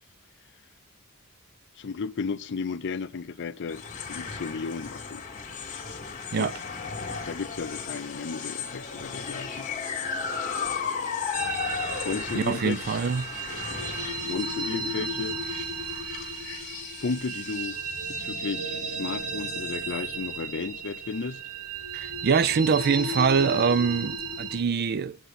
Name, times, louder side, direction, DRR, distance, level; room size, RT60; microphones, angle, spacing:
voice 1, 1.8-5.2 6.4-6.5 7.3-9.7 12.0-13.0 14.2-15.4 17.0-17.8 18.1-21.4, left 4 dB, 55° left, 0.5 m, -34 dB
sound 1, 3.7-20.1, left 5 dB, 35° left, 1.7 m, -36 dB
sound 2, 11.3-24.6, right 3 dB, 90° right, 1.5 m, -34 dB
voice 2, 12.3-13.2 21.9-25.2, right 6 dB, 45° right, 0.4 m, -24 dB
10.0 x 8.0 x 4.1 m
head